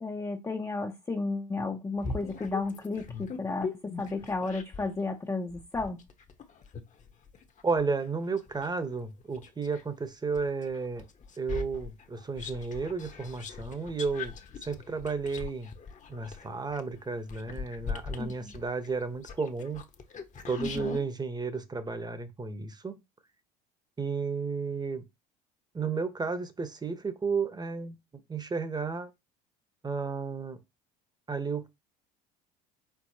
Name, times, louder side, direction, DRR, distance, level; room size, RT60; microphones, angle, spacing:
voice 1, 0.0-6.0 18.2-18.5 20.6-21.0, left 3 dB, 15° left, 0.7 m, -33 dB
sound 1, 2.0-5.0 5.5-9.9 10.3-21.0, left 5 dB, 35° left, 1.0 m, -41 dB
voice 2, 7.6-11.0 11.4-14.3 14.6-15.7 16.1-19.8 20.5-23.0 24.0-25.0 25.7-27.9 28.3-29.1 29.8-30.6 31.3-31.7, right 4 dB, 20° right, 1.0 m, -32 dB
4.6 x 4.0 x 2.8 m
hypercardioid pair, 70°, 21 cm